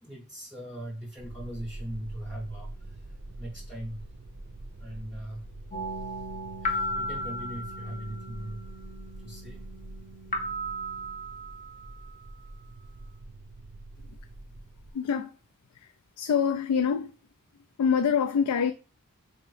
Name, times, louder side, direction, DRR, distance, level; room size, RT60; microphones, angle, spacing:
voice 1, 0.0-4.1 4.8-5.5 6.0-6.1 6.6-8.7 9.2-9.7, right 1 dB, ahead, 0.7 m, -40 dB
sound 1, 1.2-14.9, right 2 dB, 70° right, 0.6 m, -45 dB
sound 2, 5.7-12.2, equal, 35° left, 0.6 m, -36 dB
voice 2, 14.9-15.3 15.7-17.1 17.8-18.7, left 7 dB, 80° left, 0.3 m, -26 dB
3.6 x 3.0 x 3.1 m
head